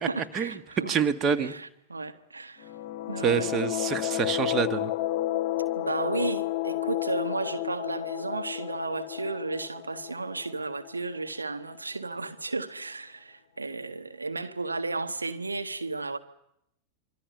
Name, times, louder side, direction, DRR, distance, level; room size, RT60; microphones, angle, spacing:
voice 1, 0.0-1.0 1.4-2.7 3.1-3.5 5.8-16.2, right 3 dB, 80° right, 1.5 m, -34 dB
voice 2, 0.9-1.5 3.2-4.9, right 7 dB, 30° right, 1.7 m, -26 dB
sound 1, 2.6-11.2, left 15 dB, 45° left, 0.9 m, -31 dB
25.5 x 25.0 x 6.8 m
figure-of-eight pair, 90°, 0 cm